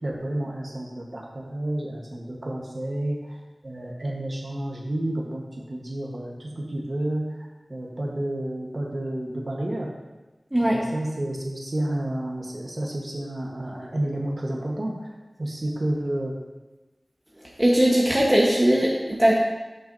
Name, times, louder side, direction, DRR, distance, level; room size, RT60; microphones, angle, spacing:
voice 1, 0.0-9.9 10.6-16.3, right 1 dB, 55° right, -2 dB, 1.2 m, -30 dB
voice 2, 10.5-10.9 17.6-19.3, right 1 dB, 20° right, -4 dB, 1.2 m, -19 dB
11.0 x 6.0 x 2.7 m, 1.1 s
wide cardioid pair, 55°, 0 cm